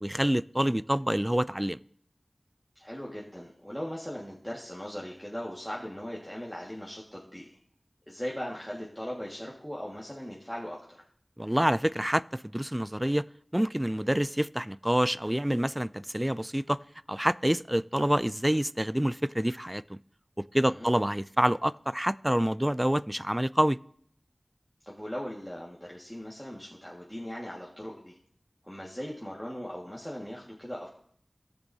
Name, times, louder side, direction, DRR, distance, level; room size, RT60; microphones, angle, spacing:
voice 1, 0.0-1.8 11.4-13.3 13.5-16.8 17.1-20.0 20.5-23.8, equal, 15° right, 0.3 m, -27 dB
voice 2, 2.7-7.6 8.1-11.0 20.7-20.9 24.8-28.2 28.6-30.9, equal, 5° left, 1.7 m, -39 dB
18.5 x 7.0 x 2.7 m
wide cardioid pair, 45°, 0 cm